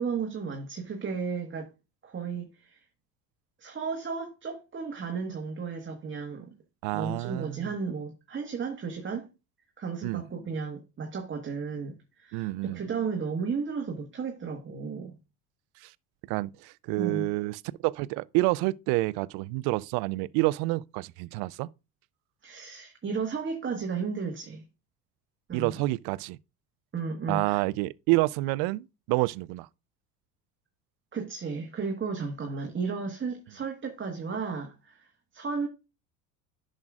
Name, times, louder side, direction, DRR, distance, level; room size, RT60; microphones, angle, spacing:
voice 1, 0.0-1.7 2.0-2.8 3.6-6.6 6.9-9.3 9.8-15.2 17.0-17.3 22.4-24.6 25.5-25.8 26.9-27.6 31.1-35.7, right 5 dB, 25° right, 1.4 m, -34 dB
voice 2, 6.8-7.7 10.0-10.2 12.3-12.8 15.8-15.9 16.3-21.7 25.5-26.4 27.3-29.7, right 21 dB, 55° right, 0.5 m, -28 dB
10.5 x 6.3 x 2.4 m
hypercardioid pair, 75°, 47 cm